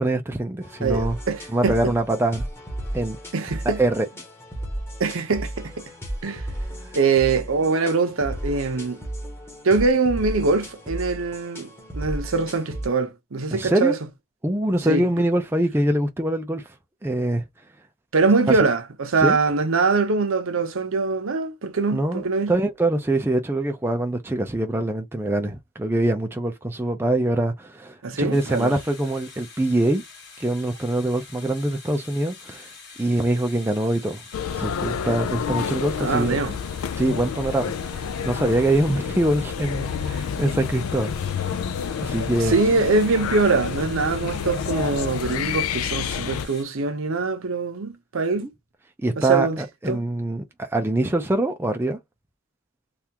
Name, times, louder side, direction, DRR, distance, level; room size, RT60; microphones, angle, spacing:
voice 1, 0.0-1.2 1.5-2.5 2.9-3.2 3.8-4.1 13.5-13.9 14.4-16.7 17.0-17.4 19.2-19.4 21.9-30.0 30.4-32.7 33.0-34.2 34.5-36.4 37.0-41.1 42.0-42.6 48.4-48.5 49.0-52.0, right 1 dB, 10° right, 0.4 m, -24 dB
sound 1, 0.6-12.9, right 1 dB, 10° left, 1.0 m, -34 dB
voice 2, 0.8-1.9 3.3-3.8 5.0-5.8 6.2-6.5 6.9-9.0 9.6-14.0 14.8-15.0 18.1-22.5 28.0-28.8 36.0-36.6 42.4-48.5 49.2-50.0, right 4 dB, 65° right, 0.7 m, -23 dB
sound 2, 28.3-46.6, left 4 dB, 50° left, 1.8 m, -45 dB
sound 3, 34.3-46.5, left 7 dB, 75° left, 0.3 m, -29 dB
3.3 x 2.4 x 2.8 m
head